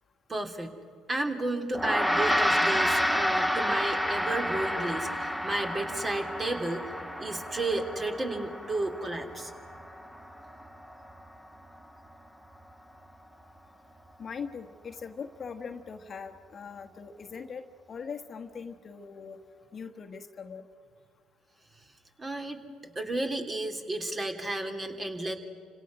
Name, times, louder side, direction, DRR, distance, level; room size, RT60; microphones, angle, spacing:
voice 1, 0.3-0.7 1.1-6.9 7.2-9.5 22.2-22.6 22.9-25.3, right 2 dB, 30° right, 4 dB, 3.2 m, -32 dB
Gong, 1.7-11.3, equal, 5° right, 2.0 m, -30 dB
voice 2, 14.2-19.4 19.7-20.6, left 6 dB, 40° left, 6 dB, 1.4 m, -41 dB
30.0 x 26.5 x 6.3 m, 2.2 s
hypercardioid pair, 55°, 0 cm